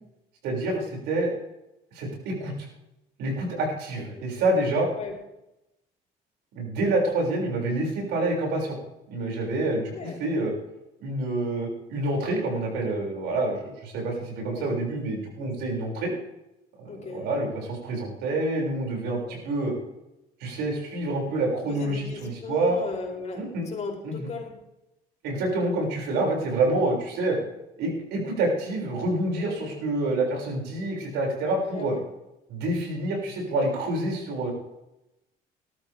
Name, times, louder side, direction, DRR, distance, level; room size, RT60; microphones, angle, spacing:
voice 1, 0.4-1.3 1.9-2.7 3.2-4.9 6.5-8.8 9.1-10.5 11.0-16.1 16.8-19.7 20.4-22.8 23.3-23.7 24.0-24.3 25.2-27.4 27.8-31.9 32.5-34.5, right 2 dB, 85° right, -1 dB, 6.7 m, -27 dB
voice 2, 9.8-10.2 14.5-14.7 16.9-17.3 19.2-19.4 21.7-24.5 29.4-29.8 31.7-32.0, left 5 dB, 40° left, 1 dB, 4.5 m, -36 dB
19.5 x 13.5 x 3.7 m, 0.91 s
cardioid pair, 110°, 17 cm